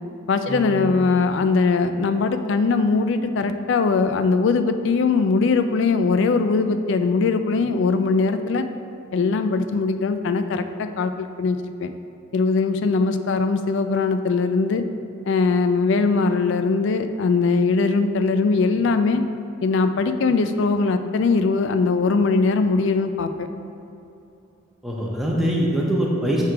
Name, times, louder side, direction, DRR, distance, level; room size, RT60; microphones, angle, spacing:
voice 1, 0.3-8.7 9.1-11.9 12.3-14.8 15.3-19.2 19.6-23.5, left 4 dB, 60° left, 9 dB, 0.3 m, -21 dB
voice 2, 24.8-26.5, right 1 dB, ahead, -4 dB, 0.7 m, -23 dB
6.5 x 3.5 x 4.6 m, 2.8 s
head